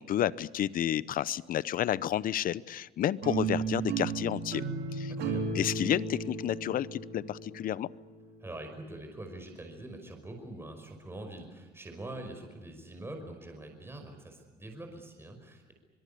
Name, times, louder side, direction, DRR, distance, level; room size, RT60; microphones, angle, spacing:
voice 1, 0.0-4.6 4.9-5.1 5.5-7.9, left 11 dB, 55° left, 19 dB, 0.8 m, -31 dB
sound 1, 3.2-8.3, right 4 dB, 75° right, 3.8 m, -34 dB
voice 2, 5.1-5.5 8.4-15.7, right 1 dB, 15° right, 4 dB, 5.4 m, -44 dB
24.5 x 22.5 x 8.5 m, 1.2 s
cardioid pair, 110°, 17 cm